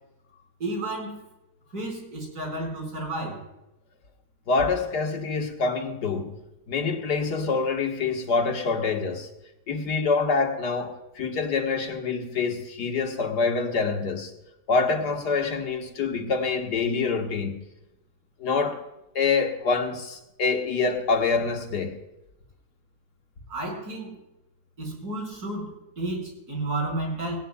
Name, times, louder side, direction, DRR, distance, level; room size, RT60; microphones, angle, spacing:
voice 1, 0.6-1.2 1.7-3.4 23.5-24.1 24.8-27.4, right 2 dB, 70° right, 0 dB, 5.5 m, -32 dB
voice 2, 4.5-6.4 6.7-9.3 9.7-14.3 14.7-17.6 18.4-18.8 19.2-22.0, left 4 dB, 90° left, 3 dB, 2.2 m, -26 dB
18.5 x 17.5 x 2.3 m, 0.93 s
omnidirectional pair, 1.7 m